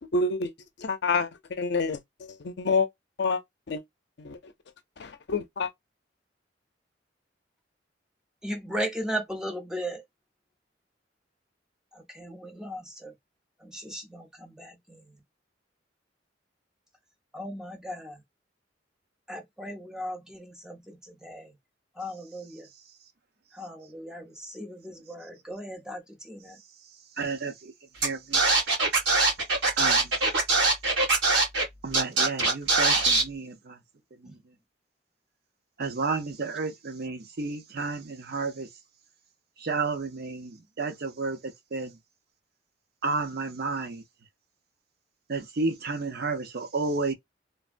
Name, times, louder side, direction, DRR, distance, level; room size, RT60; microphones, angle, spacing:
voice 1, 0.1-0.5 0.8-2.9 3.2-3.4 3.7-3.8 4.2-4.5 5.0-5.7, left 4 dB, 65° left, 0.5 m, -28 dB
voice 2, 8.4-10.0 12.1-13.1 13.6-15.0 17.3-18.2 19.3-21.5 22.0-22.7 23.5-26.6 34.3-34.4, equal, 5° right, 0.7 m, -37 dB
voice 3, 27.2-27.7 28.0-28.4 29.8-30.1 31.8-33.8 34.2-34.4 35.8-38.7 39.6-42.0 43.0-44.0 45.3-47.1, right 3 dB, 60° right, 0.7 m, -31 dB
Scratching (performance technique), 28.0-28.1 28.3-31.6 31.9-33.2, right 3 dB, 75° right, 1.9 m, -22 dB
3.3 x 2.1 x 2.5 m
head